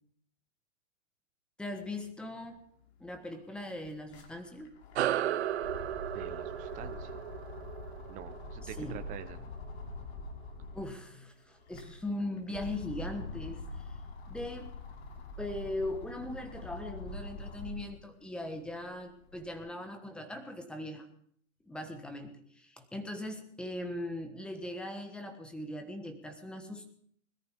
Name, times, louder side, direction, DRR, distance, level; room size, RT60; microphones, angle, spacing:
voice 1, 1.6-2.6 3.0-4.7 8.8-9.0 9.4-9.5 10.7-13.6 14.3-14.7 15.4-21.1 21.7-26.9, left 1 dB, ahead, 6 dB, 1.1 m, -40 dB
sound 1, 2.8-2.9 3.2-11.0 11.5-18.0 18.5-19.6, left 2 dB, 55° left, 3.0 m, -44 dB
sound 2, 4.9-9.8, right 12 dB, 55° right, 0.7 m, -35 dB
voice 2, 6.1-7.2 8.1-9.4, right 11 dB, 20° right, 10 dB, 1.0 m, -46 dB
20.5 x 13.5 x 3.7 m, 0.62 s
hypercardioid pair, 150°, 39 cm